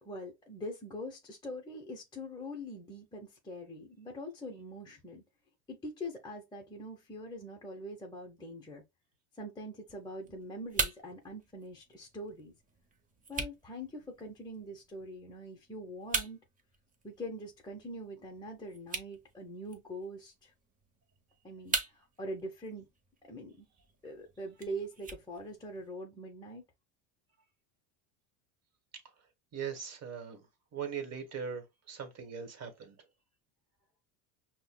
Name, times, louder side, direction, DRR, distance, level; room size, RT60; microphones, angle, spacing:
voice 1, 0.0-5.2 5.7-8.8 9.3-12.5 13.3-16.4 17.0-20.5 21.4-22.9 23.2-23.7 24.0-26.6, equal, 10° left, 0.8 m, -43 dB
sound 1, 9.9-25.9, right 4 dB, 20° right, 0.8 m, -42 dB
voice 2, 29.5-30.5 30.7-33.0, right 7 dB, 40° right, 1.3 m, -40 dB
5.4 x 2.2 x 2.2 m
supercardioid pair, 100°, 40 cm